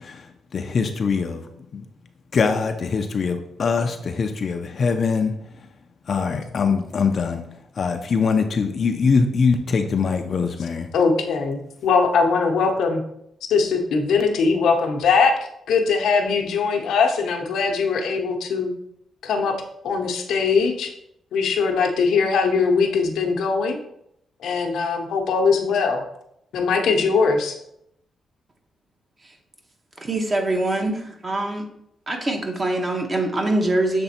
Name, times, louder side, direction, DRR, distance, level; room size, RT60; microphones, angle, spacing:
voice 1, 0.0-1.8 2.3-5.3 5.6-5.7 6.1-7.4 7.8-10.9, left 5 dB, 50° left, 6 dB, 0.5 m, -23 dB
voice 2, 10.9-13.0 13.5-15.3 15.7-18.7 19.2-19.6 19.8-20.9 21.3-23.8 24.4-26.0 26.5-27.6, left 5 dB, 85° left, 3 dB, 0.8 m, -21 dB
voice 3, 30.0-31.7 32.1-34.0, right 2 dB, 35° right, 3 dB, 1.1 m, -23 dB
6.8 x 3.4 x 4.2 m, 0.76 s
cardioid pair, 95°, 0 cm